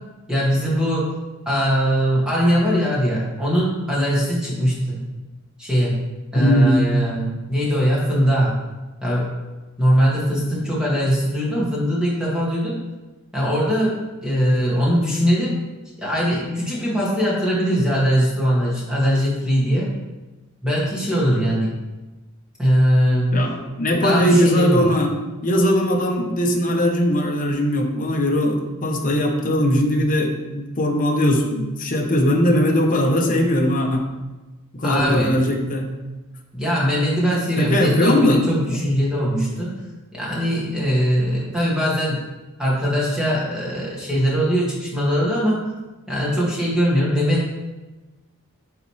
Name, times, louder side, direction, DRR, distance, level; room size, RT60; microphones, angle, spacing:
voice 1, 0.3-1.1 1.5-5.0 5.6-5.9 6.3-8.5 9.0-9.3 9.8-12.7 13.3-14.0 14.2-15.5 16.0-19.9 20.6-21.7 22.6-23.3 23.9-24.9 34.8-35.4 36.5-39.7 40.1-42.2 42.6-45.6 46.1-47.5, equal, 5° right, -7 dB, 2.0 m, -21 dB
voice 2, 6.4-6.9 23.3-25.1 25.4-34.0 34.7-35.9 37.6-38.8, equal, 40° left, 2 dB, 0.9 m, -19 dB
9.1 x 4.1 x 3.2 m, 1.1 s
head